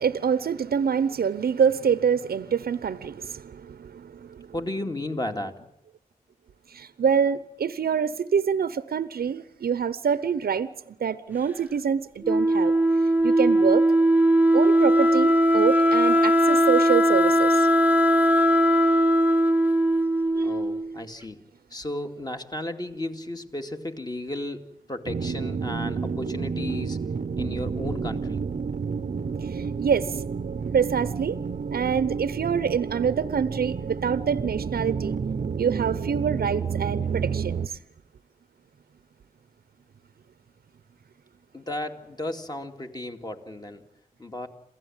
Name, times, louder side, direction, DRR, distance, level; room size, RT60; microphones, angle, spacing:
voice 1, 0.0-4.5 6.7-12.7 13.2-13.8 14.5-17.7 20.3-20.5 29.4-30.2 30.7-31.4 31.7-35.2 35.6-37.8, right 7 dB, 80° right, 0.9 m, -26 dB
voice 2, 4.5-5.7 20.4-21.4 21.7-27.0 27.4-28.4 41.5-43.8 44.2-44.5, left 1 dB, 25° left, 2.5 m, -34 dB
Wind instrument woodwind instrument, 12.2-21.0, equal, 10° right, 1.0 m, -19 dB
sound 1, 25.1-37.7, right 5 dB, 55° right, 0.8 m, -30 dB
28.0 x 16.5 x 9.0 m
wide cardioid pair, 100°, 16 cm